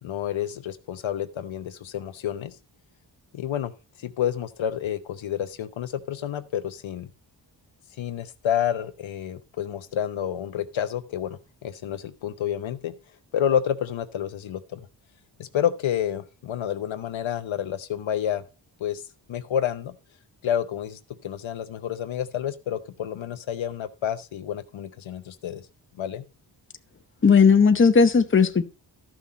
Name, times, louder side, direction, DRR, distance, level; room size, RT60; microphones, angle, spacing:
voice 1, 0.0-2.5 3.3-3.7 4.0-7.1 8.0-12.9 13.3-14.9 15.4-18.4 18.8-19.0 19.3-19.9 20.4-25.6 26.0-26.2, left 9 dB, 80° left, 1.0 m, -29 dB
voice 2, 27.2-28.6, left 5 dB, 25° left, 1.0 m, -16 dB
13.0 x 6.0 x 4.1 m
wide cardioid pair, 115°, 46 cm